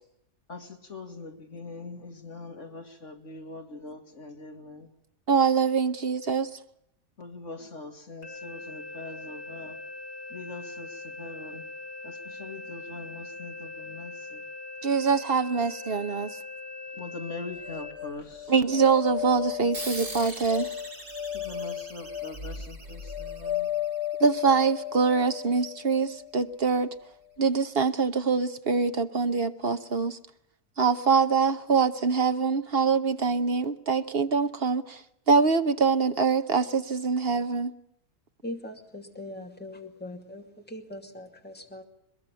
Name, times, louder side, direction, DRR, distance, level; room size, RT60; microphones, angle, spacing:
voice 1, 0.5-4.9 7.2-9.8 10.3-11.6 12.0-14.4 17.0-18.5 21.3-23.7, left 3 dB, 50° left, 2.7 m, -42 dB
voice 2, 5.3-6.5 14.8-16.3 18.5-20.7 24.2-26.9 27.4-30.2 30.8-35.0 35.3-37.7, right 5 dB, 45° right, 1.1 m, -24 dB
sound 1, 8.2-17.9, left 2 dB, 80° left, 5.1 m, -41 dB
sound 2, 17.6-26.8, left 10 dB, 65° right, 5.2 m, -35 dB
sound 3, 19.7-24.7, right 2 dB, 90° right, 6.9 m, -42 dB
voice 3, 38.4-41.8, left 1 dB, 5° left, 2.5 m, -41 dB
22.0 x 22.0 x 7.1 m
omnidirectional pair, 1.6 m